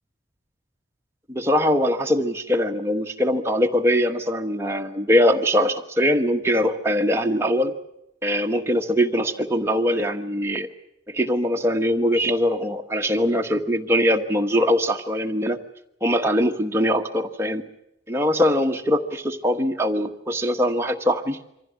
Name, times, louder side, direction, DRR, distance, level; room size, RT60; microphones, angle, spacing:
voice 1, 1.3-7.7 8.2-10.7 11.1-15.6 16.0-17.6 18.1-21.4, equal, 15° right, 3 dB, 1.3 m, -22 dB
24.5 x 15.5 x 9.4 m, 0.81 s
head